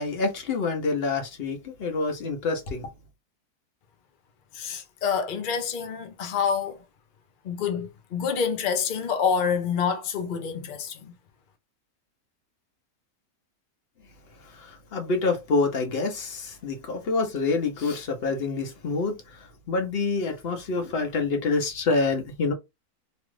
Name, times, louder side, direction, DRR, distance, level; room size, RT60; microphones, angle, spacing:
voice 1, 0.0-2.9 14.9-19.2 19.7-22.5, left 3 dB, 50° left, 0.9 m, -27 dB
voice 2, 4.5-6.8 7.4-11.1, left 6 dB, 80° left, 0.4 m, -27 dB
3.0 x 2.4 x 3.1 m
omnidirectional pair, 1.6 m